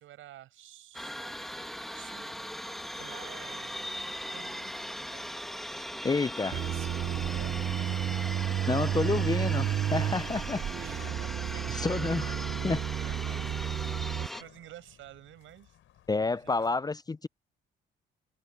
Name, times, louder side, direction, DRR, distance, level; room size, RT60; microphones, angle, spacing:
voice 1, 0.0-1.7 1.9-2.5 2.9-3.9 4.3-4.7 5.1-8.3 10.5-12.6 12.9-15.8 16.3-16.8, right 14 dB, 85° right, 5.9 m, -52 dB
sound 1, 0.9-14.4, equal, ahead, 1.9 m, -39 dB
sound 2, 2.9-16.7, left 12 dB, 80° left, 6.5 m, -60 dB
voice 2, 6.0-6.5 8.7-10.6 11.7-12.3 12.6-12.8 16.1-17.3, left 3 dB, 20° left, 0.4 m, -29 dB
sound 3, 6.5-14.3, right 11 dB, 50° right, 0.5 m, -32 dB
cardioid pair, 90°, 20 cm